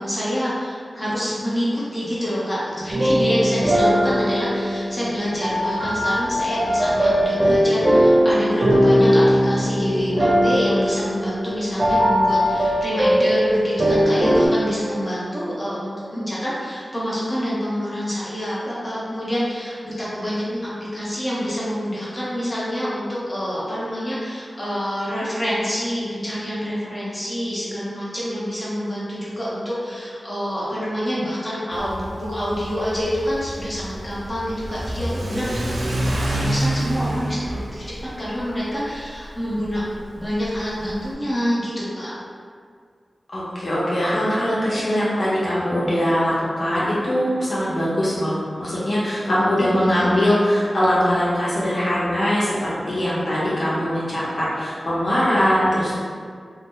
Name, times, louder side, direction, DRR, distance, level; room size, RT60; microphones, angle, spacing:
voice 1, 0.0-39.8 40.2-42.1 49.4-50.1, equal, 15° left, -8 dB, 0.8 m, -27 dB
sound 1, 2.9-14.5, equal, 55° right, 0.8 m, -19 dB
Car / Accelerating revving vroom, 31.7-41.1, right 1 dB, 85° right, 0.4 m, -28 dB
voice 2, 43.3-56.0, equal, 60° left, -9 dB, 0.9 m, -21 dB
2.8 x 2.0 x 3.6 m, 2.1 s
wide cardioid pair, 80°, 0 cm